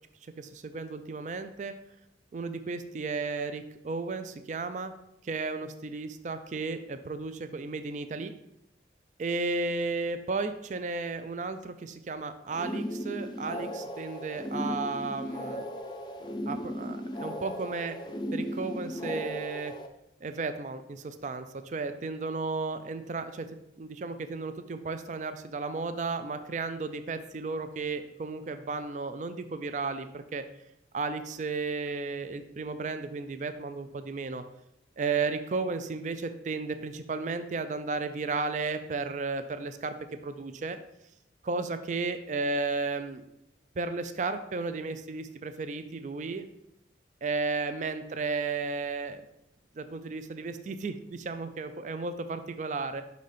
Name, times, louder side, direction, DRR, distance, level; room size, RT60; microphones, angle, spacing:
voice 1, 0.4-1.7 2.3-4.9 5.2-8.3 9.2-15.7 16.5-18.0 18.3-19.7 20.2-23.5 23.8-30.4 30.9-34.4 35.0-39.9 40.2-40.8 41.4-43.2 43.8-46.5 47.2-49.2 49.8-53.0, right 3 dB, 40° right, 10 dB, 0.4 m, -34 dB
sound 1, 12.5-19.9, equal, 25° left, 0.4 m, -36 dB
5.5 x 4.0 x 4.9 m, 0.82 s
head